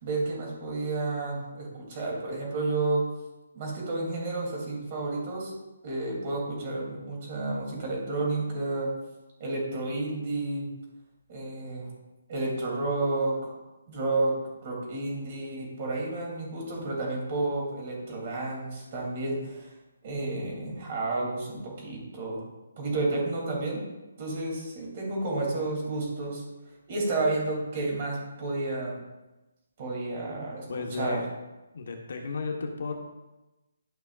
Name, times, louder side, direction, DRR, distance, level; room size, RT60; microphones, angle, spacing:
voice 1, 0.0-3.1 3.5-5.5 5.8-8.9 9.4-10.7 11.3-11.9 12.3-13.5 13.9-14.3 14.6-19.7 20.0-22.4 22.8-23.8 24.2-26.4 26.9-29.0 29.8-31.2, right 2 dB, 30° right, -2 dB, 2.8 m, -31 dB
voice 2, 30.7-31.3 31.7-32.9, left 4 dB, 50° left, 2 dB, 1.2 m, -33 dB
12.5 x 5.9 x 2.5 m, 1.0 s
hypercardioid pair, 175°, 0 cm